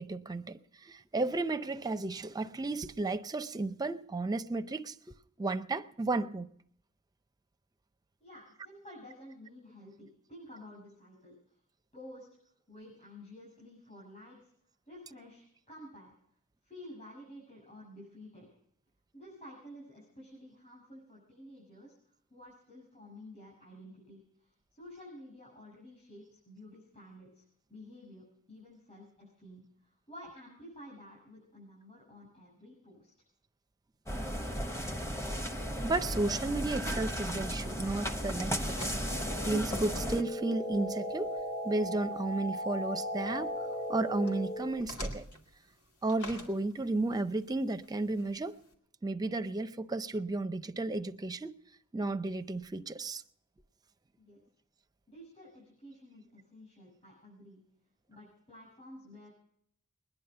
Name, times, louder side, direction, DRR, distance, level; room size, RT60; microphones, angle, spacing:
voice 1, 0.0-4.9 5.4-6.5 35.8-39.0 39.4-41.4 41.6-43.5 43.9-45.2 46.0-48.5 49.0-51.5 51.9-53.2, right 2 dB, 15° right, 0.5 m, -33 dB
voice 2, 8.2-11.6 11.9-12.3 12.7-14.5 14.9-16.1 16.6-18.5 19.1-21.9 22.3-27.4 27.7-33.1 54.2-54.4 55.1-57.6 58.1-59.3, left 1 dB, 30° left, 6.5 m, -51 dB
sound 1, 34.1-40.2, equal, 10° left, 0.9 m, -35 dB
sound 2, 36.8-48.7, left 1 dB, 80° left, 2.5 m, -50 dB
sound 3, 39.9-44.9, equal, 55° left, 2.1 m, -37 dB
21.0 x 10.5 x 6.7 m
head